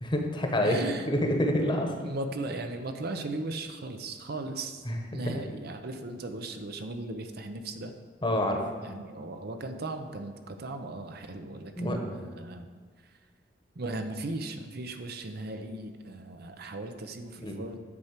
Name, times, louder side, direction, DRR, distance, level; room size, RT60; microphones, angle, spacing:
voice 1, 0.0-0.8 1.1-1.9 4.8-5.0 8.2-8.6 11.8-12.1 17.4-17.6, left 1 dB, 25° left, 2 dB, 1.2 m, -27 dB
voice 2, 0.6-1.1 2.0-4.8 5.1-7.9 8.8-12.7 13.8-17.8, right 2 dB, 60° right, 7 dB, 0.7 m, -37 dB
9.7 x 4.4 x 7.4 m, 1.5 s
head